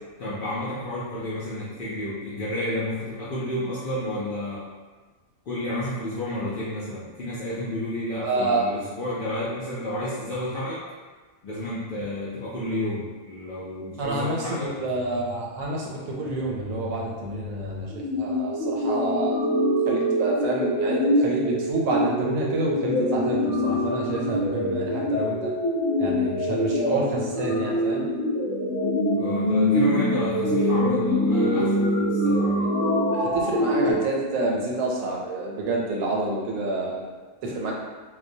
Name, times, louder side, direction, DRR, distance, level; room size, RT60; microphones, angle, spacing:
voice 1, 0.2-4.6 5.5-10.8 11.4-14.7 29.2-32.7, left 1 dB, 65° left, -9 dB, 0.5 m, -31 dB
voice 2, 8.2-8.6 14.0-19.4 19.9-25.5 26.0-28.1 33.1-37.1 37.4-37.7, right 2 dB, 90° right, -2 dB, 1.0 m, -28 dB
sound 1, 17.9-33.9, equal, 80° left, 1.0 m, -24 dB
2.2 x 2.1 x 2.6 m, 1.4 s
omnidirectional pair, 1.4 m